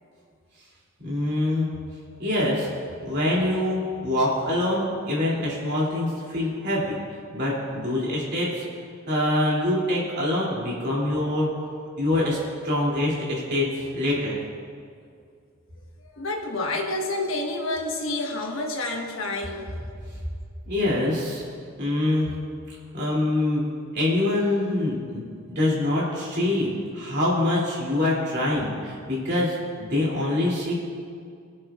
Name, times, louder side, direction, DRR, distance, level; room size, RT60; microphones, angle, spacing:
voice 1, 1.0-1.7 2.2-2.7 3.0-7.0 7.3-8.6 9.1-11.5 12.0-12.4 12.6-13.7 13.9-14.4 20.7-21.4 21.8-22.3 22.9-23.6 23.9-30.7, left 1 dB, 55° right, -6 dB, 2.9 m, -25 dB
voice 2, 16.0-19.8, left 2 dB, 75° left, 1 dB, 1.3 m, -29 dB
23.0 x 7.7 x 2.4 m, 2.3 s
head